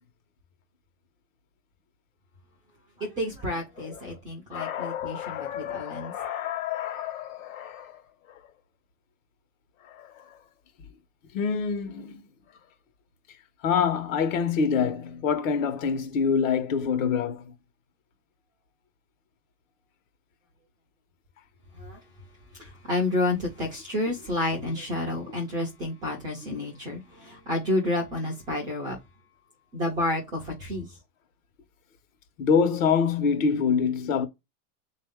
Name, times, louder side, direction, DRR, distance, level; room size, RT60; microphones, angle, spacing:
voice 1, 3.0-6.1 21.8-22.0 22.6-29.0 29.7-30.9, left 2 dB, 10° right, 0.4 m, -30 dB
voice 2, 3.8-4.2 4.5-8.0 8.3-8.4 9.8-10.4 11.3-12.2 13.6-17.5 26.5-26.6 32.4-34.3, left 6 dB, 55° left, 1.2 m, -26 dB
3.8 x 2.7 x 3.5 m
supercardioid pair, 170°, 47 cm